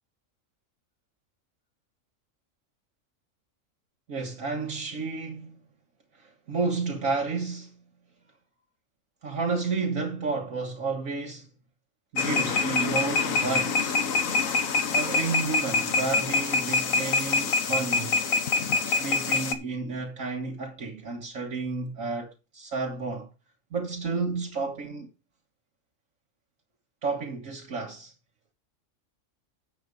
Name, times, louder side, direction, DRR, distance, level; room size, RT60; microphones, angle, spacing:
voice 1, 4.1-5.6 6.2-7.8 9.2-11.5 12.1-14.0 14.9-18.2 18.8-23.3 23.7-25.1 27.0-28.1, right 4 dB, 65° right, 1.8 m, -31 dB
sound 1, 12.2-19.5, left 4 dB, 65° left, 1.6 m, -25 dB
8.7 x 7.3 x 5.2 m
omnidirectional pair, 1.5 m